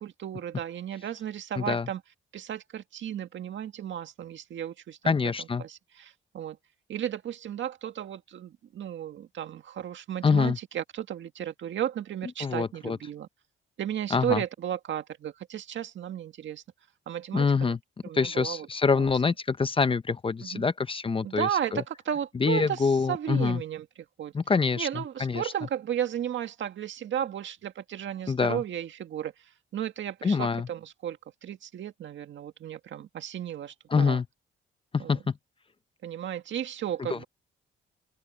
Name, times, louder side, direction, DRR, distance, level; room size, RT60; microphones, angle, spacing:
voice 1, 0.0-2.0 2.3-5.1 5.4-6.6 6.9-13.3 13.8-16.6 17.1-17.8 18.0-18.7 18.9-19.1 20.4-20.7 21.2-23.9 24.2-24.3 24.8-29.3 29.7-34.2 35.0-35.2 36.0-37.2, right 10 dB, 65° right, 1.9 m, -34 dB
voice 2, 1.6-1.9 5.1-5.6 10.2-10.6 12.4-13.0 14.1-14.4 17.3-17.8 18.1-21.8 22.3-23.6 24.3-25.4 28.3-28.6 30.2-30.7 33.9-34.3 34.9-35.2 37.0-37.2, left 5 dB, 25° left, 0.7 m, -26 dB
open air
cardioid pair, 105°, 21 cm